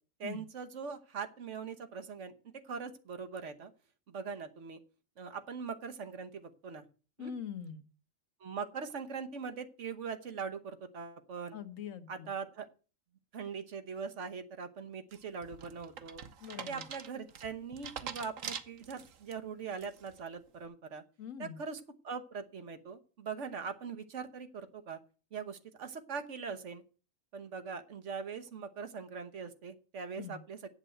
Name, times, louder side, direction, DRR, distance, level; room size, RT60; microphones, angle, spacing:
voice 1, 0.2-3.7 4.1-4.8 5.2-6.9 7.2-7.3 8.4-11.6 12.1-12.7 13.3-16.2 16.7-21.0 21.4-25.0 25.3-26.8 27.3-30.7, right 5 dB, 70° right, 8 dB, 1.4 m, -41 dB
voice 2, 7.2-7.8 11.5-12.3 16.4-16.8 21.2-21.6 30.2-30.4, left 8 dB, 85° left, 11 dB, 1.4 m, -43 dB
sound 1, 15.1-19.3 19.8-20.2, right 7 dB, 90° right, 1.3 m, -44 dB
8.1 x 7.7 x 7.7 m, 0.36 s
omnidirectional pair, 1.3 m